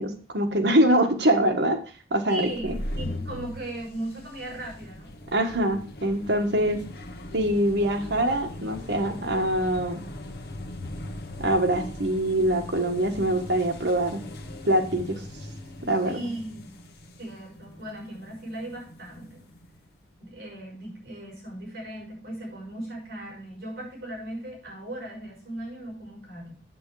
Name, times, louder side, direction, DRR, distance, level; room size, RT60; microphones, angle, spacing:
voice 1, 0.0-1.8 2.1-2.8 5.3-6.8 7.3-10.0 11.4-14.2 14.6-15.2 15.8-16.2, right 1 dB, 80° right, 6 dB, 1.5 m, -24 dB
voice 2, 2.3-5.1 16.0-16.7 17.2-19.4 20.2-26.5, right 1 dB, 55° right, -1 dB, 6.2 m, -37 dB
sound 1, 2.4-19.8, left 1 dB, 60° left, 1.2 m, -40 dB
8.4 x 7.8 x 4.8 m, 0.40 s
head